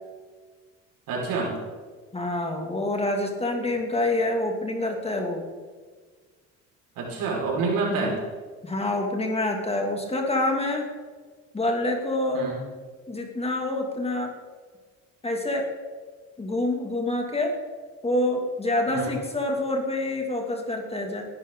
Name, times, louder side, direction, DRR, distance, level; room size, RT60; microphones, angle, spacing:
voice 1, 1.1-1.6 7.0-8.2 12.3-12.6 18.9-19.2, right 3 dB, 70° right, -2 dB, 5.3 m, -27 dB
voice 2, 2.1-5.4 7.9-8.2 8.6-10.9 11.5-12.5 13.1-14.3 15.2-15.7 16.4-17.6 18.0-21.3, left 1 dB, 15° left, 2 dB, 2.5 m, -27 dB
19.5 x 11.5 x 3.9 m, 1.5 s
supercardioid pair, 95°, 34 cm